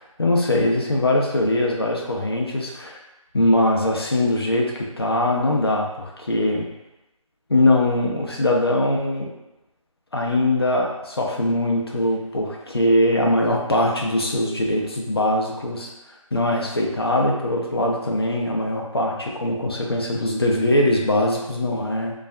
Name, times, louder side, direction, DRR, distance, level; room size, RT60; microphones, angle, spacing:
voice 1, 0.0-2.9 3.3-6.7 7.5-9.3 10.1-15.9 16.3-22.1, left 1 dB, 45° left, 0 dB, 0.4 m, -21 dB
2.6 x 2.3 x 2.2 m, 0.96 s
figure-of-eight pair, 170°, 18 cm